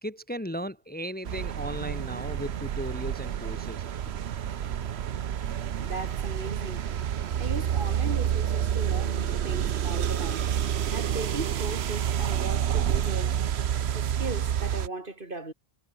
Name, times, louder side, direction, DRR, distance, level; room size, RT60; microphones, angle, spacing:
voice 1, 0.0-3.8, equal, 10° left, 1.2 m, -36 dB
sound 1, 1.2-14.9, right 9 dB, 85° right, 1.1 m, -29 dB
voice 2, 5.8-6.9 7.4-13.4 13.9-15.5, right 2 dB, 55° right, 3.3 m, -38 dB
omnidirectional pair, 1.1 m